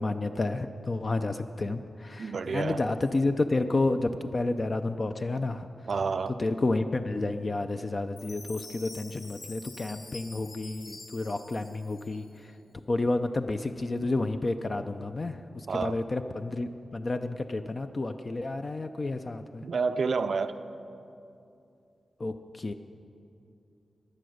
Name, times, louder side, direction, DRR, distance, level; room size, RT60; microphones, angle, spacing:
voice 1, 0.0-5.7 6.4-12.5 12.9-19.6 22.2-22.7, left 2 dB, 35° left, 8 dB, 0.4 m, -30 dB
voice 2, 2.2-2.8 5.9-6.3 15.7-16.0 19.6-20.6, right 5 dB, 60° right, 10 dB, 0.4 m, -29 dB
Chime, 8.2-12.5, left 2 dB, 85° left, 2.7 m, -47 dB
21.0 x 7.7 x 6.4 m, 2.7 s
wide cardioid pair, 140°, 0 cm